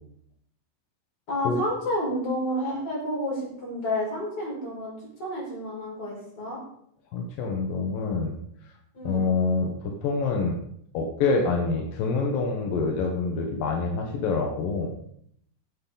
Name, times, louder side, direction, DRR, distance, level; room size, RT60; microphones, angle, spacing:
voice 1, 1.3-6.6 8.9-9.3, left 1 dB, 40° left, -4 dB, 6.4 m, -30 dB
voice 2, 7.1-8.4 9.0-10.6 10.9-15.0, left 4 dB, 85° left, 1 dB, 3.0 m, -26 dB
14.5 x 10.5 x 4.0 m, 0.69 s
omnidirectional pair, 3.9 m